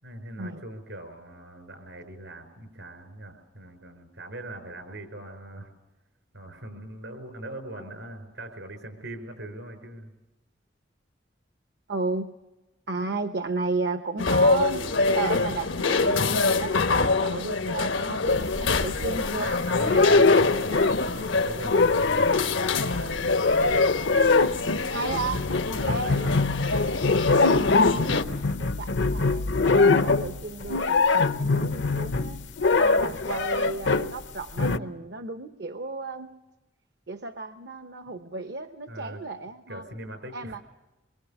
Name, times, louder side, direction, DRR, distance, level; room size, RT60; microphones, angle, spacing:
voice 1, 0.0-5.7 6.3-10.1 19.4-23.2 25.7-26.6 38.9-39.2 39.7-40.6, right 1 dB, 80° right, 8 dB, 5.3 m, -41 dB
voice 2, 11.9-12.3 12.9-14.9 15.1-16.8 17.2-19.5 24.9-25.5 25.9-26.3 27.3-28.3 28.6-32.4 32.8-36.3 37.1-39.8 40.3-40.6, right 3 dB, 60° right, 8 dB, 0.9 m, -33 dB
sound 1, 14.2-28.2, left 3 dB, 90° left, 1.3 m, -26 dB
sound 2, 18.3-19.3 19.7-21.2 21.5-34.1 34.6-34.8, left 3 dB, 75° left, 0.8 m, -23 dB
25.0 x 23.0 x 7.1 m, 1.1 s
head